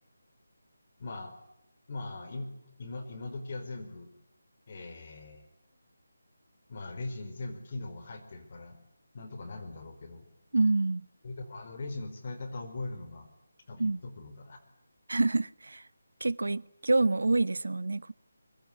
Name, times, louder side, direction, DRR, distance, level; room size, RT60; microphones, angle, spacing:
voice 1, 1.0-1.3 1.9-2.5 2.8-4.1 4.7-5.5 6.7-8.8 9.1-10.3 11.2-13.3 13.7-14.6, left 2 dB, 30° left, 4.4 m, -40 dB
voice 2, 10.5-11.1 13.8-14.0 15.1-15.8 16.2-18.1, right 3 dB, 85° right, 1.1 m, -27 dB
25.0 x 23.0 x 9.6 m
figure-of-eight pair, 175°, 0 cm